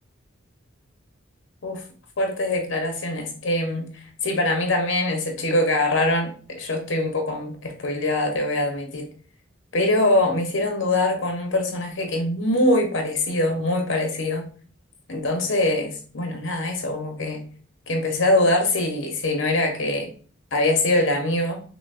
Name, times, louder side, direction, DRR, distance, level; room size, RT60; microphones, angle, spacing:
voice 1, 2.2-9.1 9.7-14.4 15.1-17.4 17.9-20.1 20.5-21.6, left 1 dB, 65° left, 3 dB, 0.8 m, -23 dB
5.9 x 2.1 x 2.5 m, 0.43 s
head